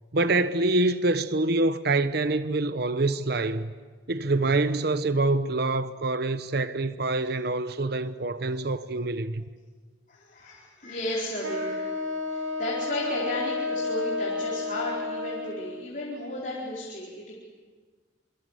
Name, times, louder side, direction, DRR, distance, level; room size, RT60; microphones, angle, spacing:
voice 1, 0.1-3.7 4.1-9.4, right 2 dB, 55° right, 0.9 m, -25 dB
voice 2, 10.1-12.0 12.3-17.3, left 1 dB, 40° left, 4.6 m, -34 dB
Wind instrument woodwind instrument, 11.4-15.9, left 3 dB, 85° right, 3.3 m, -31 dB
27.0 x 25.0 x 8.3 m
head